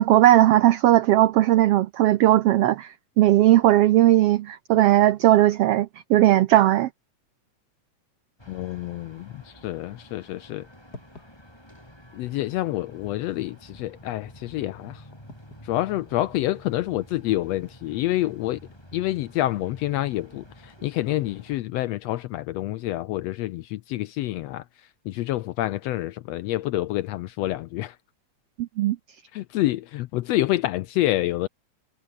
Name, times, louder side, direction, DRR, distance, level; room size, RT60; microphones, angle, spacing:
voice 1, 0.0-6.9 28.6-29.0, right 14 dB, 85° right, 1.3 m, -18 dB
sound 1, 8.4-21.6, left 1 dB, 5° left, 6.5 m, -49 dB
voice 2, 8.5-10.7 12.1-15.0 15.6-18.6 18.9-28.0 29.3-31.5, left 15 dB, 80° left, 1.5 m, -28 dB
sound 2, 9.1-18.8, left 2 dB, 30° left, 6.0 m, -55 dB
omnidirectional pair, 3.5 m